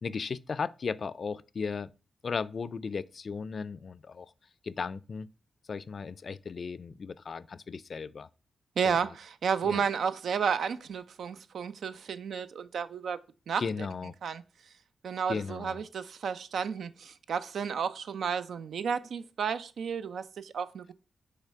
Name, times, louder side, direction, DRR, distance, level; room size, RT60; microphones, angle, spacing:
voice 1, 0.0-1.9 2.2-4.3 4.6-5.3 5.7-8.3 8.8-9.0 9.6-9.8 13.6-14.1 15.3-15.8, left 5 dB, 60° left, 0.3 m, -36 dB
voice 2, 8.8-13.2 13.5-13.6 14.2-14.4 15.0-20.9, right 6 dB, 80° right, 0.4 m, -32 dB
5.8 x 3.2 x 5.6 m
cardioid pair, 55°, 0 cm